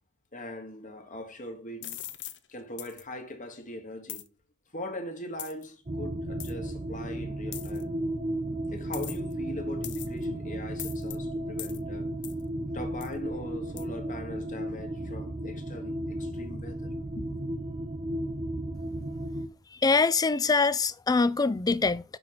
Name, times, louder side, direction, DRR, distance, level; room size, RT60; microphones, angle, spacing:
voice 1, 0.3-2.0 2.5-4.3 4.7-8.0 8.7-12.1 12.7-17.4, left 1 dB, 35° left, 1.4 m, -41 dB
sound 1, 1.8-2.4 2.8-3.0 4.1-4.3 5.4-5.6 6.4-6.5 7.5-7.8 8.9-9.3 9.8-10.2 10.8-11.2 11.6-11.8 12.2-12.4 13.0-13.1 13.8-13.9, left 13 dB, 55° left, 0.7 m, -40 dB
sound 2, 5.9-19.5, right 1 dB, 25° right, 0.6 m, -34 dB
voice 2, 19.8-22.0, left 4 dB, 15° left, 0.3 m, -24 dB
6.2 x 4.9 x 5.9 m
head